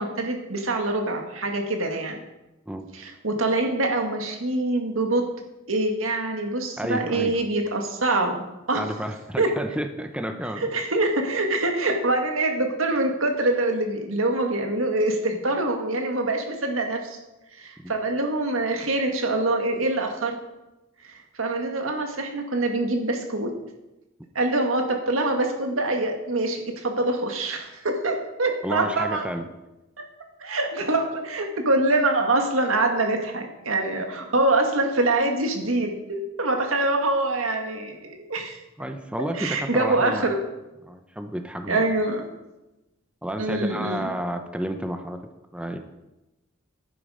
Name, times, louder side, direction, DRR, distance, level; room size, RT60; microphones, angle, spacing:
voice 1, 0.0-2.2 2.9-5.3 5.7-8.8 9.4-9.5 10.7-17.2 17.6-20.4 21.0-23.5 24.3-29.2 30.4-38.6 39.3-40.4 41.7-42.3 43.4-44.0, right 2 dB, 85° right, 3 dB, 1.8 m, -25 dB
voice 2, 6.8-7.4 8.7-10.7 17.8-17.9 28.6-29.5 38.8-40.3 40.8-41.9 43.2-45.8, right 1 dB, 5° right, 6 dB, 0.7 m, -31 dB
11.0 x 9.5 x 5.0 m, 0.99 s
head